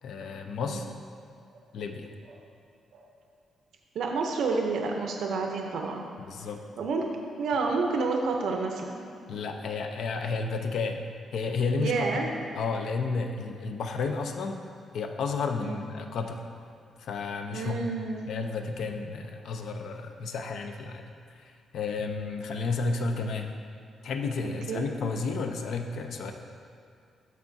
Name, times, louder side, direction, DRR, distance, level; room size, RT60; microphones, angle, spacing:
voice 1, 0.0-0.9 1.7-2.1 6.3-6.6 9.3-11.0 11.3-12.3 12.6-14.7 14.9-16.4 17.0-17.8 18.3-21.0 21.4-23.5 24.0-26.3, left 4 dB, 65° left, 5 dB, 0.5 m, -32 dB
voice 2, 3.9-6.1 6.8-7.1 7.4-9.0 11.8-12.3 15.6-15.8 17.5-18.3 24.4-24.9, right 4 dB, 70° right, 2 dB, 0.6 m, -29 dB
13.0 x 4.7 x 2.7 m, 2.4 s
cardioid pair, 155°, 0 cm